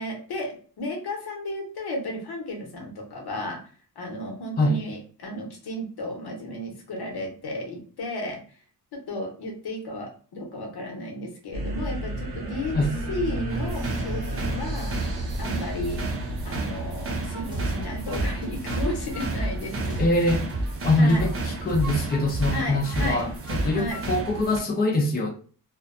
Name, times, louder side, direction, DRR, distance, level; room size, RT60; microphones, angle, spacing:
voice 1, 0.0-3.6 4.0-8.4 8.9-12.8 13.1-14.9 15.4-16.0 16.4-20.0 21.0-21.3 22.5-23.3 23.7-24.0, left 1 dB, 85° left, 1 dB, 0.9 m, -33 dB
sound 1, 11.5-20.3, right 1 dB, 80° right, 0.7 m, -33 dB
sound 2, 13.5-24.6, right 3 dB, 35° right, 0.5 m, -33 dB
sound 3, 17.2-20.8 21.1-24.0, right 1 dB, 15° right, 0.8 m, -31 dB
voice 2, 20.0-20.4 20.8-25.3, left 1 dB, 25° left, 1 dB, 0.5 m, -23 dB
2.5 x 2.2 x 2.4 m, 0.41 s
wide cardioid pair, 155°, 37 cm